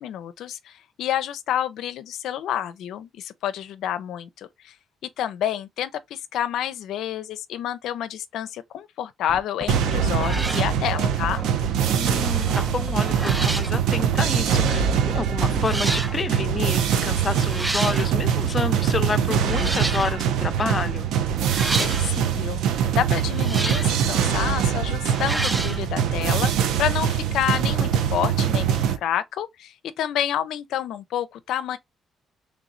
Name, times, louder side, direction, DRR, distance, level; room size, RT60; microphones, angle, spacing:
voice 1, 0.0-4.7 5.2-11.4 21.8-26.5 26.8-31.8, left 10 dB, 80° left, 0.4 m, -29 dB
sound 1, 9.3-15.9, right 3 dB, 50° right, 0.7 m, -33 dB
sound 2, 9.6-9.8 10.1-10.7 12.4-12.7 13.1-13.8 14.8-14.9 15.6-16.2 17.3-18.1 19.4-20.2 21.5-22.1 23.3-24.0 25.1-25.8, right 2 dB, 15° right, 0.4 m, -30 dB
sound 3, 9.7-29.0, right 8 dB, 85° right, 0.7 m, -23 dB
voice 2, 11.8-21.1, left 4 dB, 35° left, 0.5 m, -29 dB
3.2 x 3.0 x 3.8 m
cardioid pair, 90°, 0 cm